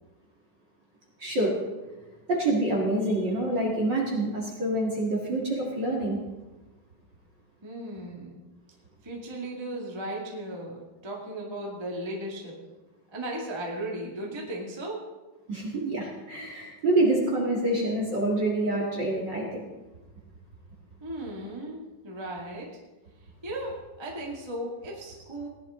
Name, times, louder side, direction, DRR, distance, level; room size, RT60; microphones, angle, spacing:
voice 1, 1.2-1.5 2.3-6.2 15.5-19.6, right 2 dB, 40° right, -3 dB, 1.7 m, -26 dB
voice 2, 7.6-8.4 9.0-12.6 13.1-15.0 21.0-22.7 23.4-25.5, right 1 dB, 15° right, -2 dB, 0.9 m, -36 dB
18.5 x 11.0 x 3.8 m, 1.1 s
omnidirectional pair, 4.8 m